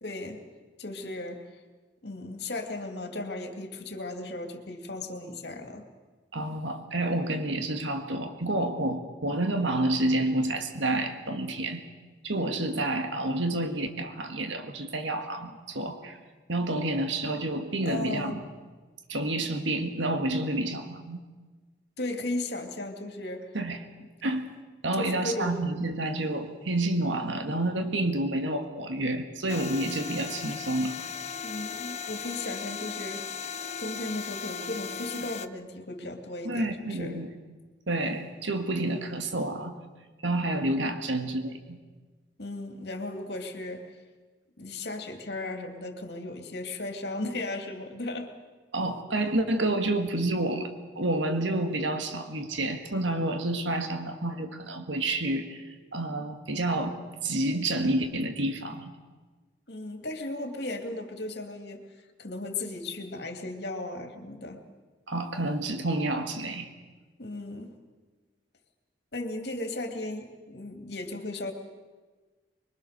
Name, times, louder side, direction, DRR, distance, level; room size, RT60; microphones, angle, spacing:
voice 1, 0.0-0.4 0.8-1.5 2.0-5.8 17.8-18.4 22.0-23.5 25.0-25.6 31.4-33.2 33.8-37.2 42.4-43.9 44.6-48.3 59.7-64.6 67.2-67.8 69.1-71.5, left 2 dB, 60° left, 5 dB, 2.6 m, -36 dB
voice 2, 6.3-11.8 12.2-16.2 16.5-18.4 19.1-21.2 23.5-23.8 24.2-24.5 24.8-31.0 36.4-37.3 37.9-39.7 40.2-41.8 48.7-50.7 51.0-58.9 65.1-66.7, right 1 dB, 90° right, 6 dB, 1.9 m, -29 dB
sound 1, 29.5-35.5, left 6 dB, 35° left, 0.7 m, -37 dB
25.0 x 22.5 x 6.7 m, 1.3 s
head